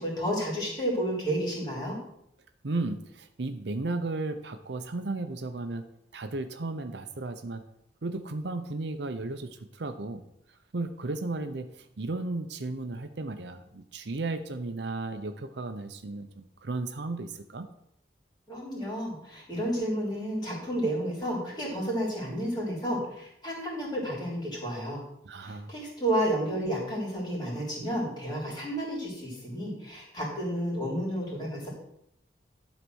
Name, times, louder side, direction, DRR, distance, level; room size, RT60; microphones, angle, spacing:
voice 1, 0.0-1.9 18.5-25.0 25.4-31.7, equal, 25° left, -4 dB, 3.4 m, -31 dB
voice 2, 2.6-5.8 6.1-7.6 8.0-10.2 10.7-17.7 25.2-25.7, right 2 dB, 65° right, 8 dB, 0.7 m, -34 dB
11.5 x 4.1 x 6.2 m, 0.77 s
head